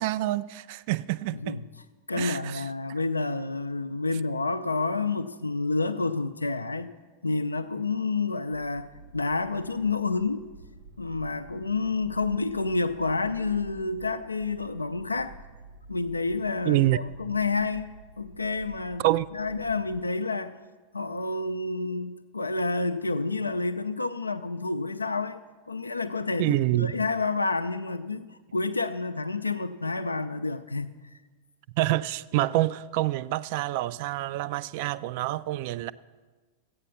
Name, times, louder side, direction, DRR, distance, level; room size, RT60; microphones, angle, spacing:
voice 1, 0.0-1.6 2.2-2.6 16.7-17.0 19.0-19.3 26.4-26.9 31.8-35.9, right 16 dB, 50° right, 0.3 m, -26 dB
voice 2, 2.1-6.9 7.2-8.9 9.1-10.4 11.0-15.3 15.9-17.9 18.2-19.0 19.3-20.5 20.9-25.4 25.7-30.9, left 3 dB, 80° left, 0.4 m, -29 dB
sound 1, 8.5-20.0, right 3 dB, 65° right, 0.9 m, -49 dB
14.0 x 9.0 x 5.7 m
figure-of-eight pair, 90°, 0 cm